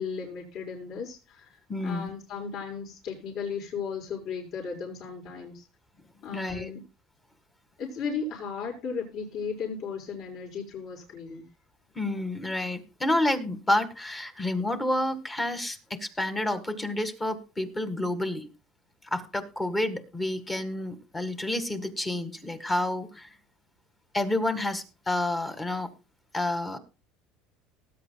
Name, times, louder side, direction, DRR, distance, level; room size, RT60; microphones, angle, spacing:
voice 1, 0.0-5.6 6.2-6.8 7.8-11.4, left 5 dB, 50° left, -2 dB, 6.2 m, -35 dB
voice 2, 1.7-2.1 6.3-6.7 12.0-18.5 19.1-23.3 24.1-25.9 26.3-26.8, left 1 dB, 10° left, 8 dB, 1.7 m, -29 dB
19.5 x 9.4 x 2.3 m, 0.31 s
cardioid pair, 160°, 0 cm